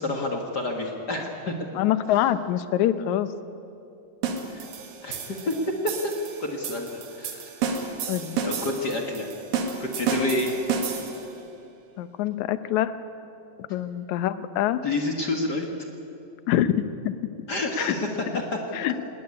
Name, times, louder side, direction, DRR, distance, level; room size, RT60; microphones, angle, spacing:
voice 1, 0.0-1.5 4.5-4.6 5.0-5.6 5.8-6.1 6.4-7.7 8.4-9.3 9.8-10.5 14.8-15.7 17.5-18.6, left 2 dB, 45° left, 2 dB, 1.5 m, -29 dB
voice 2, 1.8-3.3 8.1-8.4 12.0-12.9 13.7-14.8 16.5-17.2 17.8-17.9 18.7-18.9, left 12 dB, 70° left, 13 dB, 2.0 m, -25 dB
sound 1, 4.2-11.3, right 5 dB, 90° right, 3.6 m, -31 dB
19.0 x 18.5 x 9.7 m, 2.8 s
omnidirectional pair, 3.9 m